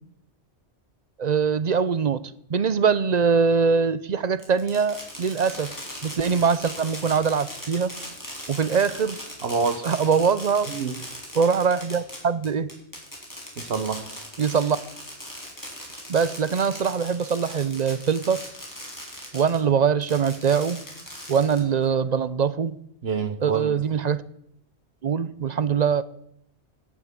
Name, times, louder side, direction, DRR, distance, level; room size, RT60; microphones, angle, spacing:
voice 1, 1.2-5.7 6.0-7.9 8.5-9.2 9.8-10.7 11.3-12.7 14.4-14.8 16.1-18.4 19.3-20.8 21.3-22.8 23.4-24.2 25.0-26.0, right 6 dB, 45° right, 0.6 m, -23 dB
Fireworks, 4.4-19.6 20.0-21.9, equal, 15° left, 3.8 m, -39 dB
voice 2, 9.4-9.9 10.7-11.0 13.6-14.1 23.0-23.7, right 5 dB, 65° right, 1.3 m, -27 dB
16.5 x 7.3 x 7.4 m
omnidirectional pair, 1.2 m